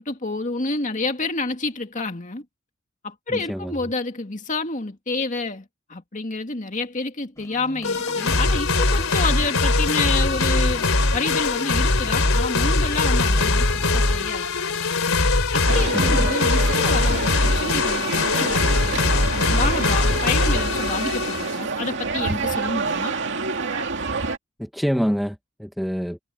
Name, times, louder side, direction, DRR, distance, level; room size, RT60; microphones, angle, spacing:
voice 1, 0.0-2.4 3.0-5.6 5.9-14.5 15.5-23.1, left 3 dB, 40° left, 2.2 m, -29 dB
voice 2, 3.3-3.9 15.9-16.3 24.6-26.2, equal, ahead, 1.2 m, -26 dB
sound 1, 7.4-14.3, left 1 dB, 15° left, 4.0 m, -42 dB
sound 2, 7.8-21.6, left 3 dB, 90° left, 3.3 m, -21 dB
sound 3, 15.7-24.4, right 4 dB, 60° right, 2.4 m, -28 dB
head